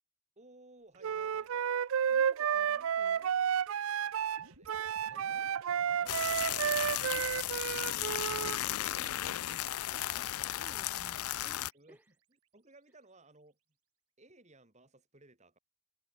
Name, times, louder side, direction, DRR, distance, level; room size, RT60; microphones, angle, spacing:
voice 1, 0.4-1.7 4.2-7.5 10.1-10.3 10.7-10.8 11.7-12.2 12.5-13.6 14.2-15.6, right 2 dB, 30° right, 4.2 m, -61 dB
Wind instrument woodwind instrument, 1.0-8.6, right 8 dB, 65° right, 0.4 m, -32 dB
voice 2, 2.1-3.3 7.9-12.1, equal, 10° right, 1.9 m, -59 dB
sound 1, 4.4-12.7, right 3 dB, 85° right, 5.1 m, -61 dB
sound 2, 6.1-11.7, left 14 dB, 75° left, 0.4 m, -35 dB
head